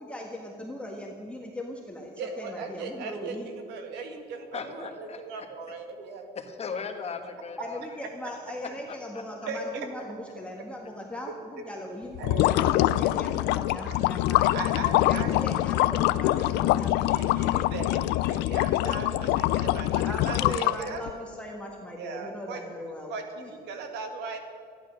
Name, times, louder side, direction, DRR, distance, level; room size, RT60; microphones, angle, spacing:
voice 1, 0.0-3.5 7.6-12.2 12.5-14.5 14.9-17.0 20.0-23.1 23.4-23.5, left 1 dB, 5° left, -1 dB, 1.6 m, -39 dB
voice 2, 2.2-6.3 9.5-9.9 12.2-12.9 13.8-14.0 14.5-15.4 15.7-15.8 17.1-21.0 22.0-22.6 23.1-24.4, right 4 dB, 85° right, 5 dB, 1.9 m, -38 dB
voice 3, 4.5-5.5 6.3-8.0 8.6-9.5, left 5 dB, 40° left, 5 dB, 1.5 m, -38 dB
sound 1, 12.1-21.1, left 15 dB, 90° left, 0.4 m, -24 dB
14.0 x 11.5 x 6.5 m, 2.2 s
cardioid pair, 110°, 17 cm